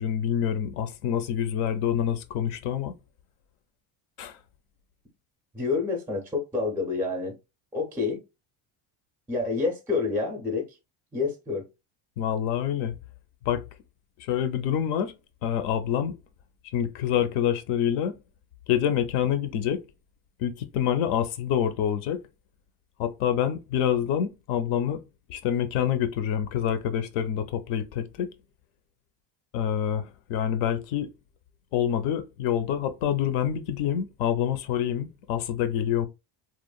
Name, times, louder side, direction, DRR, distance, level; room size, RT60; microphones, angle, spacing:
voice 1, 0.0-2.9 4.2-4.4 12.2-12.9 13.5-13.6 14.2-15.1 15.4-16.2 16.7-18.2 18.7-19.8 20.4-22.2 23.0-25.0 25.3-28.3 29.5-31.1 31.7-36.1, left 9 dB, 75° left, 0.5 m, -26 dB
voice 2, 5.5-7.3 7.7-8.2 9.3-10.8 11.1-11.7, left 4 dB, 5° right, 0.4 m, -28 dB
2.9 x 2.1 x 2.2 m
cardioid pair, 165°, 47 cm